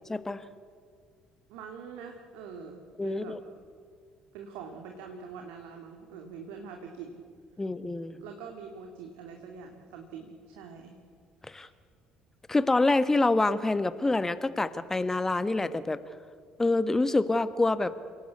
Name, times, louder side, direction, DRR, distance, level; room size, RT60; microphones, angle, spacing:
voice 1, 0.1-0.4 3.0-3.4 7.6-8.2 11.4-11.7 12.5-16.0 16.6-17.9, left 2 dB, 15° left, 14 dB, 1.2 m, -26 dB
voice 2, 1.5-3.4 4.3-7.2 8.2-10.9 11.5-11.8, right 6 dB, 65° right, 3 dB, 2.2 m, -44 dB
28.5 x 17.5 x 8.4 m, 2.1 s
figure-of-eight pair, 50°, 3 cm